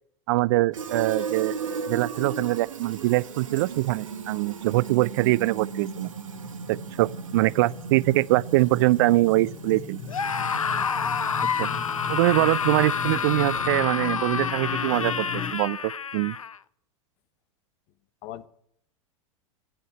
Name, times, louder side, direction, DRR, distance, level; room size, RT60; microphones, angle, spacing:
voice 1, 0.3-1.5 1.9-6.1 6.7-10.0 11.6-11.7 12.1-16.4, right 19 dB, 45° right, 0.4 m, -23 dB
Fill (with liquid), 0.7-13.8, right 5 dB, 70° right, 1.2 m, -37 dB
sound 1, 5.7-15.5, left 8 dB, 25° left, 1.9 m, -38 dB
Screaming, 10.1-16.6, left 6 dB, 80° left, 0.5 m, -28 dB
voice 2, 10.8-11.1 18.2-18.5, left 13 dB, 40° left, 0.9 m, -41 dB
11.5 x 7.9 x 8.7 m
figure-of-eight pair, 90°, 17 cm